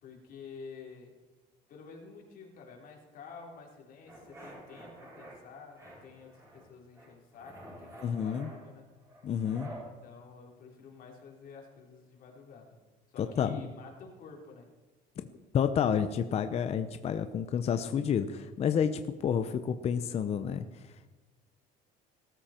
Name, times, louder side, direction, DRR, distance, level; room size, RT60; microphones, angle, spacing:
voice 1, 0.0-1.1 1.7-8.9 9.8-12.8 13.1-14.7, left 5 dB, 50° left, 0 dB, 3.9 m, -50 dB
sound 1, 4.0-5.4 5.7-6.7 6.9-9.9, right 1 dB, 15° right, 7.5 m, -49 dB
voice 2, 8.0-8.5 9.2-9.7 13.2-13.6 15.5-20.6, left 7 dB, 35° left, 9 dB, 0.8 m, -29 dB
21.0 x 14.0 x 4.5 m, 1.2 s
cardioid pair, 140°, 19 cm